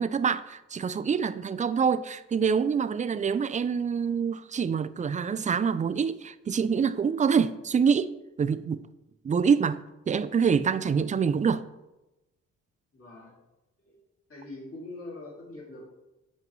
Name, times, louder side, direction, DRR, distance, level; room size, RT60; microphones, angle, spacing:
voice 1, 0.0-8.8 9.2-11.6, right 6 dB, 25° right, 0.3 m, -26 dB
voice 2, 12.9-13.3 13.8-14.0 14.3-15.9, left 2 dB, 45° left, 2.6 m, -43 dB
8.0 x 5.3 x 3.1 m
cardioid pair, 75°, 31 cm